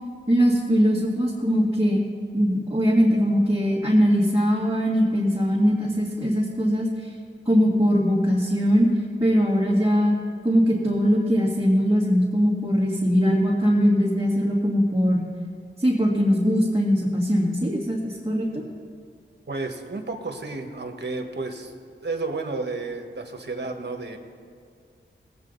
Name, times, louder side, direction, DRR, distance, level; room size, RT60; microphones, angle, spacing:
voice 1, 0.3-2.0 2.3-6.9 7.5-8.9 9.2-10.2 10.4-15.3 15.8-18.6, equal, 15° right, -6 dB, 2.0 m, -21 dB
voice 2, 19.5-21.7 22.0-24.2, right 3 dB, 55° right, 4 dB, 1.4 m, -31 dB
19.5 x 8.5 x 4.0 m, 2.2 s
wide cardioid pair, 65°, 20 cm